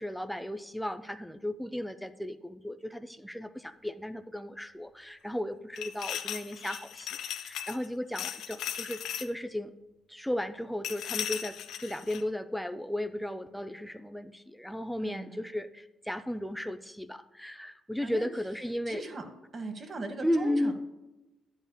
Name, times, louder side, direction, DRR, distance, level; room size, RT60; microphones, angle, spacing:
voice 1, 0.0-9.7 10.1-19.0 20.2-20.7, left 1 dB, ahead, 8 dB, 0.4 m, -35 dB
sound 1, 5.8-7.9 8.1-9.3 10.8-12.2, left 10 dB, 85° left, 0.5 m, -37 dB
voice 2, 15.0-15.4 18.0-18.3 18.9-19.2 19.5-20.7, right 2 dB, 45° right, 6 dB, 1.3 m, -39 dB
11.0 x 8.0 x 2.3 m, 1.0 s
cardioid pair, 90°, 0 cm